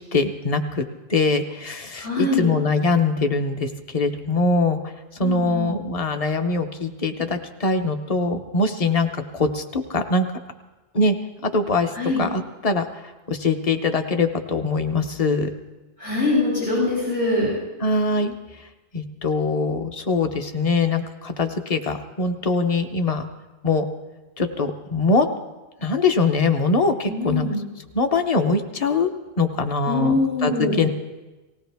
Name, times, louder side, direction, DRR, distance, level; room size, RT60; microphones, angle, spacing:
voice 1, 0.1-4.8 5.2-10.3 10.9-11.2 11.4-11.9 12.2-12.8 13.3-15.5 17.8-18.3 18.9-23.2 23.6-23.9 24.4-25.3 25.8-27.5 27.9-29.1 29.4-30.9, left 3 dB, 40° left, 7 dB, 0.9 m, -22 dB
voice 2, 2.0-2.5 5.2-5.7 12.0-12.2 16.0-17.5 27.1-27.6 29.9-30.8, left 2 dB, 90° left, -10 dB, 7.5 m, -23 dB
19.0 x 16.5 x 3.5 m, 1.1 s
omnidirectional pair, 1.0 m